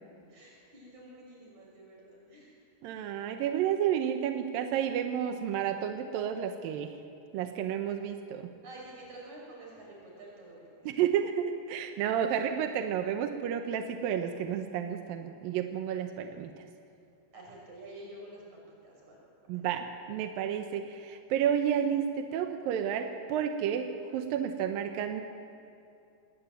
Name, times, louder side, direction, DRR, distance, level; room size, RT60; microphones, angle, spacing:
voice 1, 0.3-2.5 8.6-11.0 17.3-18.4 18.8-19.2, right 1 dB, 40° right, -3 dB, 7.3 m, -49 dB
voice 2, 2.8-6.9 7.3-8.5 10.9-16.5 19.5-25.2, right 9 dB, 75° right, 6 dB, 2.2 m, -31 dB
20.0 x 18.0 x 9.2 m, 2.5 s
omnidirectional pair, 5.1 m